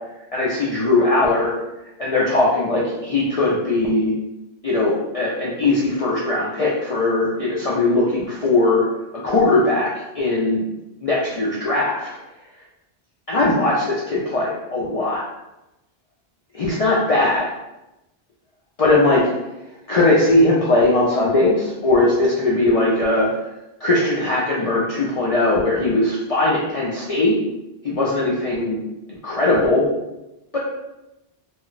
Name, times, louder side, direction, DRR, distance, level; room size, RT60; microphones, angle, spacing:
voice 1, 0.3-1.5 2.0-4.1 4.6-8.8 9.2-9.9 10.1-10.6 11.0-12.1 13.3-15.2 16.5-17.4 18.8-19.2 19.9-23.3 23.8-27.3 27.8-28.8 29.1-29.8 30.5-30.6, left 2 dB, 55° left, -6 dB, 0.4 m, -19 dB
2.3 x 2.1 x 3.8 m, 0.96 s
omnidirectional pair, 1.1 m